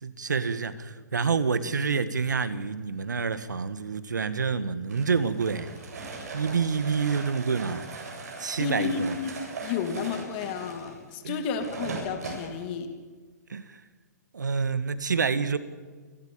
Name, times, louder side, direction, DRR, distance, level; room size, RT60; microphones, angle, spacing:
voice 1, 0.0-5.7 6.3-7.9 8.4-9.2 11.2-11.4 13.5-13.8 14.3-15.6, right 5 dB, 90° right, 14 dB, 1.6 m, -28 dB
sound 1, 4.9-12.5, right 3 dB, 60° right, 7.9 m, -39 dB
voice 2, 8.6-12.9, left 6 dB, 35° left, 7 dB, 2.6 m, -32 dB
28.5 x 13.0 x 8.6 m, 1.4 s
hypercardioid pair, 140°, 10 cm